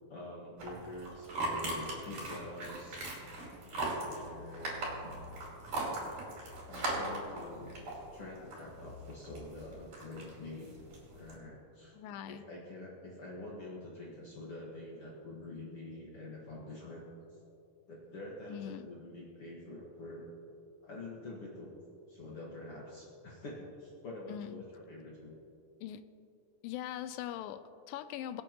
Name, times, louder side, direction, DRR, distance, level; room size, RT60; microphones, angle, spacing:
voice 1, 0.1-3.0 4.0-5.1 6.7-10.8 11.1-12.0 12.3-17.0 17.9-20.3 20.8-21.7 22.1-25.3, left 2 dB, 50° left, -5 dB, 2.1 m, -46 dB
sound 1, 0.6-11.3, right 2 dB, 65° right, 4.4 m, -40 dB
voice 2, 11.9-12.4 18.5-18.9 24.3-24.6 25.8-26.0 26.6-28.4, left 11 dB, 90° left, 11 dB, 2.3 m, -41 dB
23.5 x 8.8 x 3.0 m, 2.6 s
omnidirectional pair, 4.0 m